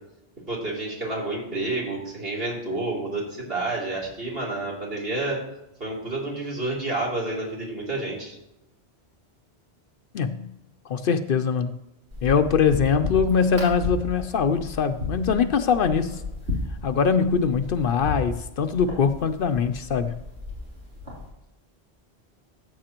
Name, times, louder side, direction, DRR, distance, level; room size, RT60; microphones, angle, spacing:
voice 1, 0.5-5.4 5.8-8.4, right 2 dB, 65° right, -4 dB, 3.2 m, -29 dB
voice 2, 10.1-10.5 10.9-11.7 12.2-16.2 16.8-20.2, left 6 dB, 65° left, 9 dB, 0.7 m, -22 dB
sound 1, 12.1-21.3, left 3 dB, 85° right, 3.4 m, -34 dB
14.0 x 8.2 x 2.9 m, 0.89 s
omnidirectional pair, 1.1 m